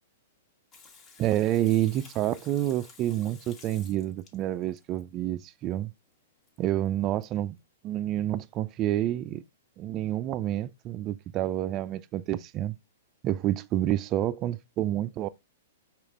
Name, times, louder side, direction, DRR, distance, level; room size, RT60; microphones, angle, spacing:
Water tap faucet / Sink (filling or washing), 0.7-5.0 6.5-6.6 6.9-7.0 7.2-7.3, left 4 dB, 30° left, 1.1 m, -53 dB
voice 1, 1.2-5.9 6.6-7.6 7.8-9.4 9.8-12.7 13.2-15.3, right 13 dB, 35° right, 0.3 m, -28 dB
4.9 x 3.0 x 3.0 m
hypercardioid pair, 120°, 0 cm